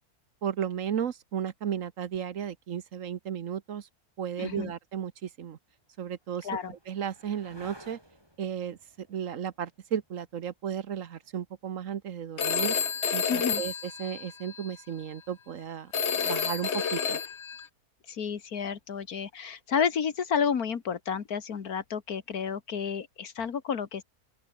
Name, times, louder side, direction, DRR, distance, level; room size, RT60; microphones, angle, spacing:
voice 1, 0.4-3.9 4.2-5.6 6.0-8.0 8.4-12.8 13.1-13.7 14.0-15.9 16.2-17.2, right 8 dB, 65° right, 1.3 m, -34 dB
voice 2, 4.4-4.7 6.4-6.7 13.3-13.6 18.1-24.0, left 7 dB, 80° left, 2.1 m, -31 dB
sound 1, 5.3-12.9 15.3-15.8, equal, 15° right, 7.7 m, -57 dB
Telephone, 12.4-14.7 15.9-17.7, left 7 dB, 50° left, 1.4 m, -30 dB
open air
omnidirectional pair, 1.6 m